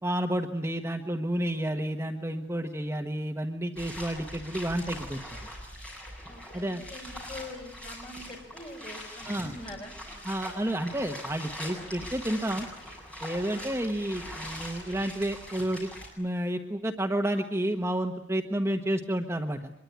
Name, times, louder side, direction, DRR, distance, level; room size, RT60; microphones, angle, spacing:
voice 1, 0.0-5.2 6.5-6.8 9.2-9.5 10.2-12.7 13.2-15.9 16.2-19.7, right 1 dB, 15° right, 4 dB, 1.2 m, -30 dB
sound 1, 3.8-16.1, equal, 5° left, 7.7 m, -42 dB
voice 2, 6.3-10.3, left 2 dB, 25° left, 1 dB, 6.6 m, -44 dB
25.0 x 22.0 x 9.3 m, 0.78 s
head